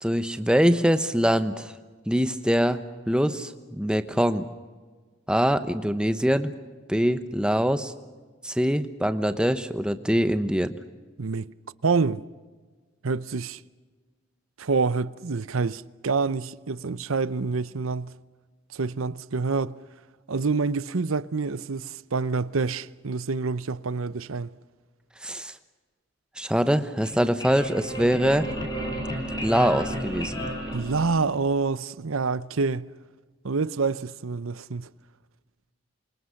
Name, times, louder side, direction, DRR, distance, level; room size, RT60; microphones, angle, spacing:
voice 1, 0.0-1.7 2.1-2.8 3.1-4.5 5.3-6.5 6.9-7.9 8.4-10.7 25.2-25.5 26.4-28.5 29.4-30.5, equal, 5° right, 1.0 m, -23 dB
voice 2, 11.2-11.5 11.8-12.2 13.0-13.6 14.6-18.1 18.7-19.7 20.3-24.5 30.7-32.9 33.4-34.9, right 4 dB, 80° right, 0.7 m, -27 dB
sound 1, 26.9-31.6, equal, 20° left, 4.9 m, -33 dB
28.0 x 25.0 x 6.5 m
head